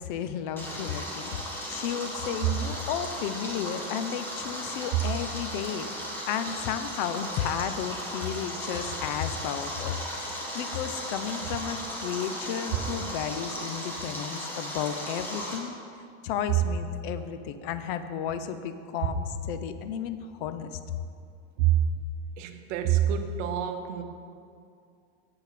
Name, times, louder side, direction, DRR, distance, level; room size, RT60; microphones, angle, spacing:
voice 1, 0.0-1.4 1.7-15.8 16.2-20.7, left 8 dB, 45° left, 10 dB, 0.4 m, -33 dB
Stream, 0.6-15.6, equal, 5° left, 1.1 m, -36 dB
voice 2, 22.4-24.0, right 11 dB, 70° right, 7 dB, 0.9 m, -26 dB
8.6 x 7.9 x 4.9 m, 2.4 s
supercardioid pair, 165°, 38 cm